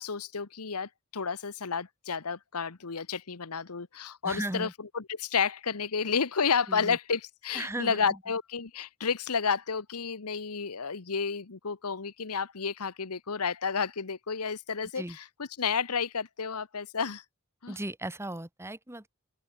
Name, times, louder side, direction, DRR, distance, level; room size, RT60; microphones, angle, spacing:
voice 1, 0.0-17.2 17.6-17.8, left 6 dB, 85° left, 1.1 m, -31 dB
voice 2, 4.2-4.7 6.7-7.0 7.6-8.0 15.0-15.2 17.7-19.1, right 1 dB, 10° right, 1.7 m, -36 dB
open air
head